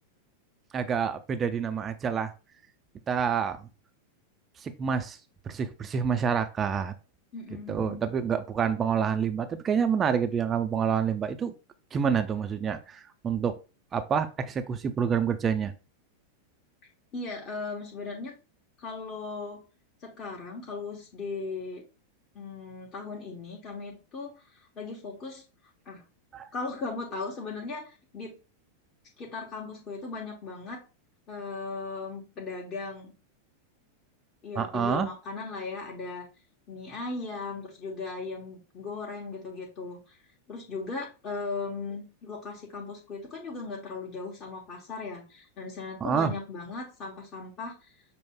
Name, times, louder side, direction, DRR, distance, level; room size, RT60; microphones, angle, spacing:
voice 1, 0.7-2.3 3.1-3.6 4.6-5.2 5.5-6.9 7.7-11.5 11.9-13.6 13.9-15.7 26.3-26.5 34.6-35.1 46.0-46.3, right 7 dB, 25° right, 9 dB, 0.5 m, -27 dB
voice 2, 7.3-8.0 16.8-18.3 18.8-19.6 20.0-21.8 22.3-25.4 25.8-26.0 26.5-28.4 29.2-30.8 31.3-33.1 34.4-36.3 36.7-47.9, left 3 dB, 30° left, -2 dB, 1.2 m, -37 dB
6.3 x 2.2 x 3.6 m, 0.32 s
figure-of-eight pair, 90°, 0 cm